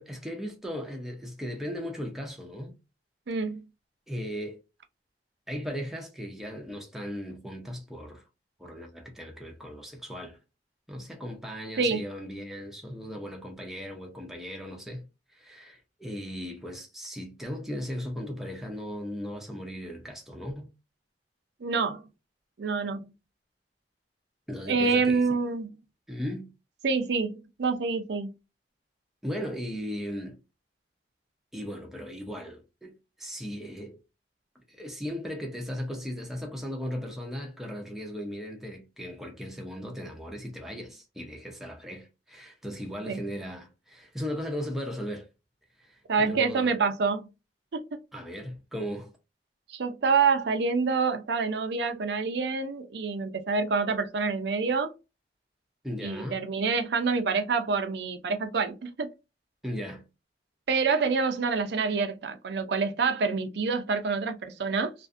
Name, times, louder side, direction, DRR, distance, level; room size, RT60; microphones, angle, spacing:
voice 1, 0.0-2.7 4.1-4.6 5.5-8.2 8.6-10.4 10.9-15.0 15.3-20.7 24.5-25.2 26.1-26.5 29.2-30.4 31.5-34.0 34.5-45.3 45.8-46.7 48.1-49.1 55.8-56.5 59.6-60.0, equal, ahead, 0.6 m, -37 dB
voice 2, 3.3-3.6 11.8-12.0 21.6-22.0 22.6-23.1 24.7-25.7 26.8-28.3 43.1-43.2 46.1-47.3 47.7-47.8 49.7-54.9 56.0-59.1 60.7-64.9, right 4 dB, 70° right, 0.5 m, -27 dB
2.5 x 2.5 x 2.4 m
head